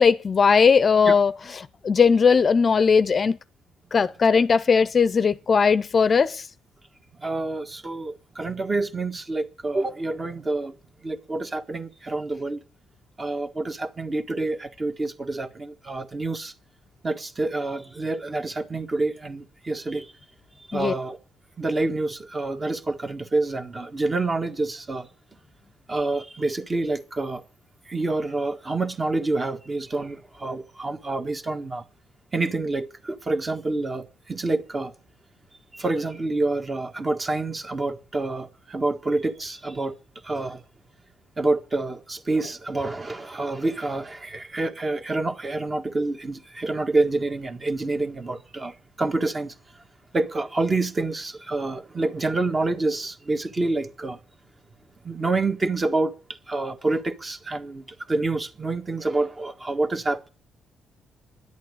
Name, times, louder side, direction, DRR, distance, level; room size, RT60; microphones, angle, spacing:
voice 1, 0.0-1.3 1.8-3.4 3.9-6.4 20.7-20.9, left 5 dB, 40° left, 0.6 m, -18 dB
voice 2, 7.2-10.7 11.0-12.6 13.2-16.5 17.0-20.1 20.7-21.2 21.6-25.1 25.9-27.4 27.9-31.8 32.3-34.9 35.7-39.9 40.2-40.6 41.4-49.5 50.1-54.2 55.0-56.2 56.5-60.3, right 2 dB, 30° right, 1.6 m, -27 dB
11.0 x 8.4 x 9.7 m
cardioid pair, 90°, 0 cm